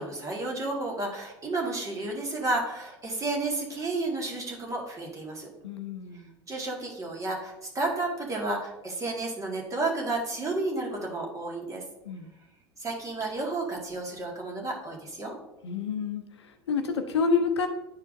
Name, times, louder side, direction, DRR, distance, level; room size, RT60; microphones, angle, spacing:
voice 1, 0.0-5.5 6.5-11.8 12.8-15.4, right 2 dB, 20° right, -1 dB, 1.8 m, -31 dB
voice 2, 5.6-6.3 12.1-12.3 15.6-17.7, left 5 dB, 70° left, 7 dB, 0.7 m, -28 dB
10.5 x 4.4 x 2.5 m, 0.92 s
figure-of-eight pair, 75°, 14 cm